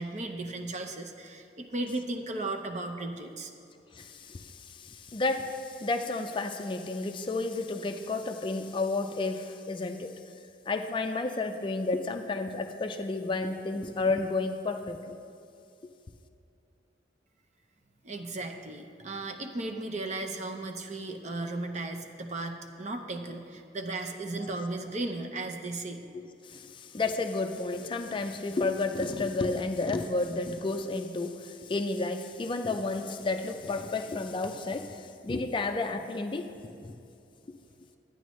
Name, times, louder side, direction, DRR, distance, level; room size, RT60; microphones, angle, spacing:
voice 1, 0.0-3.5 18.0-26.0, right 2 dB, 40° right, 5 dB, 0.7 m, -35 dB
voice 2, 4.0-10.1 10.7-15.2 26.5-36.5 36.8-36.9, left 3 dB, 30° left, 6 dB, 0.4 m, -31 dB
12.5 x 9.2 x 3.1 m, 2.7 s
head